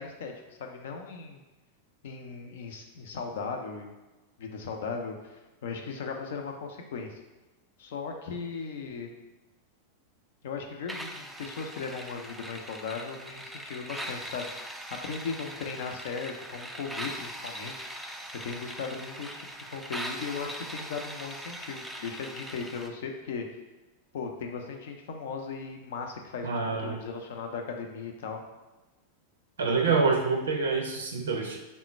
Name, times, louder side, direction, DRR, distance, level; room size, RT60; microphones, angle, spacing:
voice 1, 0.0-1.4 2.0-3.9 4.4-7.2 7.8-9.1 10.4-14.8 15.0-17.8 18.4-23.5 24.1-28.4, left 5 dB, 55° left, 3 dB, 0.5 m, -37 dB
sound 1, 10.9-22.9, right 1 dB, 5° right, 0.4 m, -41 dB
voice 2, 26.4-27.0 29.6-31.6, right 4 dB, 70° right, 2 dB, 0.6 m, -26 dB
3.7 x 2.1 x 4.2 m, 1.1 s
figure-of-eight pair, 90°, 0 cm